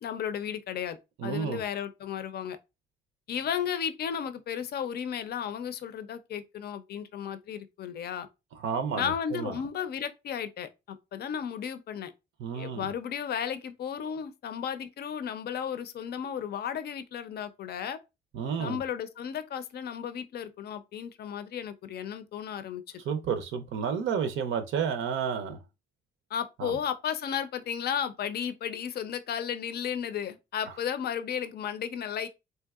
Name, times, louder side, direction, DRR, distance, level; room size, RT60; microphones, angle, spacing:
voice 1, 0.0-2.6 3.3-8.3 9.0-12.1 12.5-18.0 18.6-22.8 26.3-32.3, left 8 dB, 55° left, 0.5 m, -34 dB
voice 2, 1.2-1.6 8.6-9.5 12.4-12.8 18.3-18.8 23.1-25.6 26.6-26.7, right 6 dB, 80° right, 0.5 m, -31 dB
3.3 x 2.7 x 2.3 m
cardioid pair, 90°, 20 cm